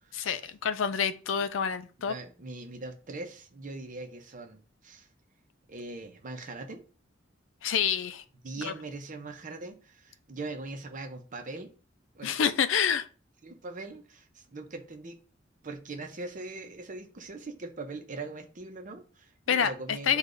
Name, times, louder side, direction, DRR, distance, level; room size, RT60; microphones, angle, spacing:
voice 1, 0.1-2.1 7.6-8.2 8.6-8.7 12.2-13.1 19.5-20.2, left 7 dB, 90° left, 0.4 m, -28 dB
voice 2, 2.0-5.1 5.7-6.8 8.4-11.7 12.1-12.3 13.4-15.2 15.6-20.2, right 3 dB, 45° right, 0.7 m, -41 dB
6.5 x 2.4 x 2.6 m
head